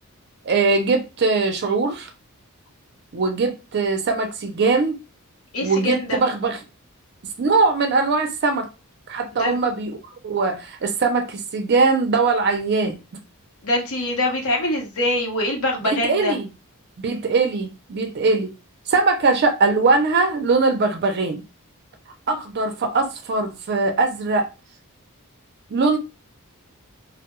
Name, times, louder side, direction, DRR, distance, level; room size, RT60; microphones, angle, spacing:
voice 1, 0.4-2.1 3.1-5.0 5.6-6.6 7.4-8.7 9.1-10.0 10.2-13.0 15.8-16.5 17.0-18.5 18.9-21.4 22.3-24.5 25.7-26.0, right 3 dB, 50° right, 0.5 m, -21 dB
voice 2, 5.5-6.2 9.4-9.6 13.6-16.4, left 1 dB, 70° left, 0.7 m, -24 dB
2.2 x 2.0 x 2.9 m
head